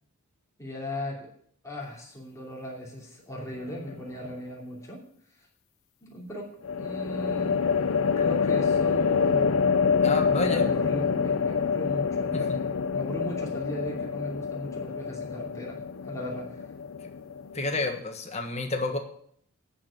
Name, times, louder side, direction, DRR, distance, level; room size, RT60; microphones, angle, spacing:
voice 1, 0.6-1.3 1.6-5.0 5.4-5.5 6.0-6.5 6.8-7.6 8.2-9.7 10.4-12.7 12.9-16.6, equal, 15° left, -3 dB, 2.8 m, -37 dB
sound 1, 3.5-4.1 6.6-18.0, left 6 dB, 65° left, 0.6 m, -27 dB
voice 2, 10.0-11.1 12.3-12.6 17.5-19.0, left 3 dB, 30° left, 3 dB, 1.5 m, -30 dB
9.9 x 6.2 x 8.7 m, 0.64 s
head